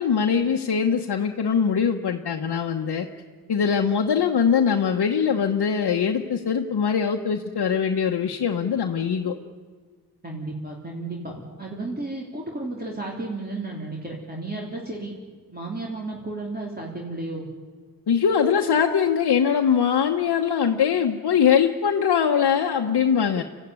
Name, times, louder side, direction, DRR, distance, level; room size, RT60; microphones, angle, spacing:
voice 1, 0.0-3.1 3.5-9.4 18.1-23.4, left 7 dB, 75° left, 2 dB, 1.2 m, -22 dB
voice 2, 10.2-15.1 15.5-17.5, right 2 dB, 25° right, -2 dB, 3.4 m, -33 dB
26.0 x 15.0 x 9.6 m, 1.5 s
wide cardioid pair, 90°, 39 cm